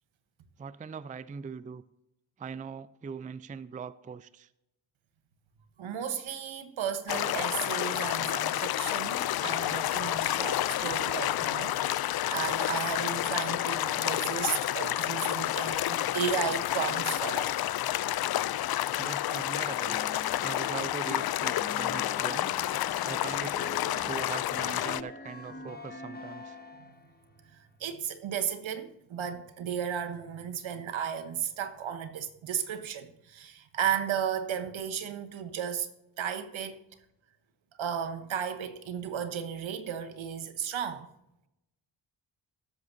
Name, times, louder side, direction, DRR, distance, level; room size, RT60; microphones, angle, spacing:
voice 1, 0.6-1.8 2.4-4.5 19.0-20.0 20.4-22.5 23.0-26.6, right 6 dB, 15° right, 0.4 m, -41 dB
voice 2, 5.8-17.6 27.5-35.9 36.2-36.8 37.8-41.1, right 8 dB, 70° right, 1.1 m, -34 dB
sound 1, 7.1-25.0, left 13 dB, 50° left, 0.5 m, -30 dB
sound 2, 19.9-27.2, left 2 dB, 20° left, 1.3 m, -44 dB
18.0 x 8.2 x 2.7 m
supercardioid pair, 45°, 48 cm